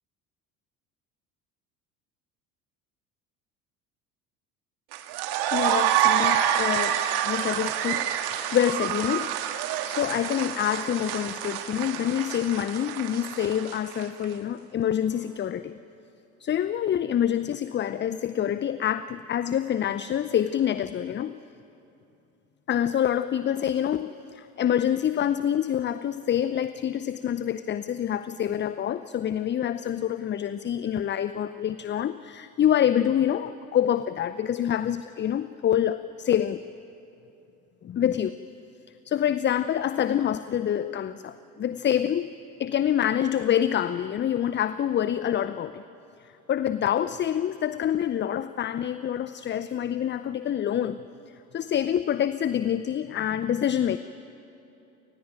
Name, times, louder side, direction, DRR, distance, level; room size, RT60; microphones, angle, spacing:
sound 1, 4.9-14.2, right 10 dB, 55° right, 1.8 m, -27 dB
voice 1, 5.5-9.3 9.9-15.8 16.4-21.4 22.7-36.6 37.8-38.3 39.0-42.3 42.6-45.8 46.5-51.0 51.5-54.0, left 10 dB, 25° left, 14 dB, 0.6 m, -26 dB
27.0 x 20.0 x 9.2 m, 2.8 s
figure-of-eight pair, 60°, 46 cm